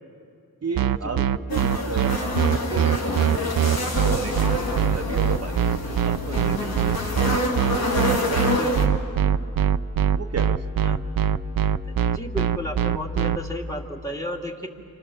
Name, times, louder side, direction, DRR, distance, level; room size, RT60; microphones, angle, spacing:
voice 1, 0.6-7.0 7.6-8.7 10.1-10.7, right 5 dB, 40° right, 4 dB, 0.9 m, -34 dB
sound 1, 0.8-13.4, right 9 dB, 65° right, 0.6 m, -22 dB
sound 2, 1.5-8.9, left 2 dB, 70° left, 3.3 m, -27 dB
voice 2, 11.8-14.7, left 1 dB, 10° left, 2 dB, 2.7 m, -33 dB
29.0 x 27.5 x 7.1 m, 2.4 s
wide cardioid pair, 105°, 37 cm